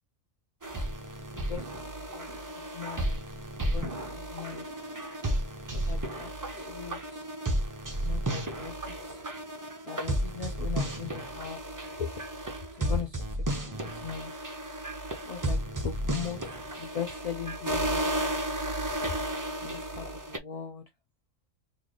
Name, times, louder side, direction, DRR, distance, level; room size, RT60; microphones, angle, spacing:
sound 1, 0.6-20.4, right 1 dB, 25° right, 0.4 m, -33 dB
voice 1, 1.3-1.7 2.1-2.2 2.6-3.2 3.6-4.6 5.7-6.3 6.6-7.2 8.0-8.8 9.0-9.2 9.9-11.6 12.0-12.1 12.8-13.2 13.6-14.4 15.3-16.5 16.8-18.0 19.6-20.8, left 7 dB, 55° left, 0.4 m, -39 dB
3.2 x 2.6 x 3.8 m
omnidirectional pair, 1.4 m